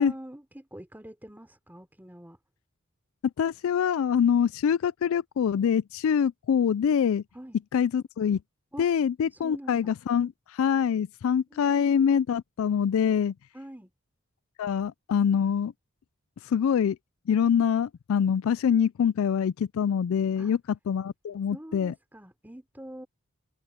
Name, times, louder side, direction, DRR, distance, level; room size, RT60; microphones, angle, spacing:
voice 1, 0.0-2.4 7.3-7.6 8.7-8.9 9.3-9.9 11.5-12.2 13.5-13.9 20.4-20.5 21.5-23.1, right 1 dB, 10° right, 3.4 m, -45 dB
voice 2, 3.4-7.2 7.7-8.4 8.8-13.3 14.6-15.7 16.5-17.0 17.3-20.6 20.9-21.9, left 7 dB, 70° left, 0.3 m, -25 dB
head